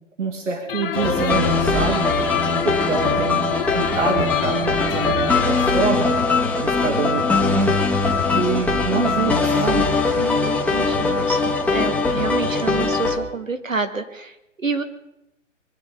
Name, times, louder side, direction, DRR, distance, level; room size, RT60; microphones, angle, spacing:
voice 1, 0.2-2.1 2.6-6.2 6.6-7.8 8.3-9.9, right 4 dB, 70° right, 1 dB, 2.8 m, -25 dB
sound 1, 0.7-6.0, left 10 dB, 45° left, 1.1 m, -29 dB
sound 2, 0.9-13.2, left 3 dB, 5° left, 1.2 m, -21 dB
voice 2, 10.2-14.8, right 4 dB, 90° right, 8 dB, 1.8 m, -28 dB
23.5 x 10.5 x 5.3 m, 0.88 s
figure-of-eight pair, 130°, 38 cm